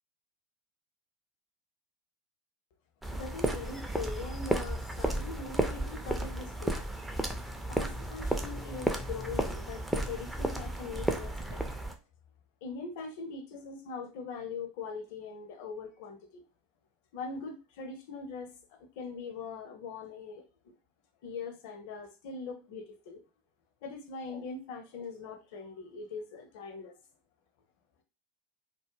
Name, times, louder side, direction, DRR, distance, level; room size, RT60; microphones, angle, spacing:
sound 1, 3.0-11.9, right 1 dB, 5° right, 0.4 m, -33 dB
voice 1, 3.1-6.8 7.7-11.6 12.6-16.4 17.1-20.4 21.2-23.2 23.8-26.9, left 4 dB, 55° left, 6 dB, 0.6 m, -42 dB
2.3 x 2.1 x 3.0 m, 0.31 s
figure-of-eight pair, 80°, 0 cm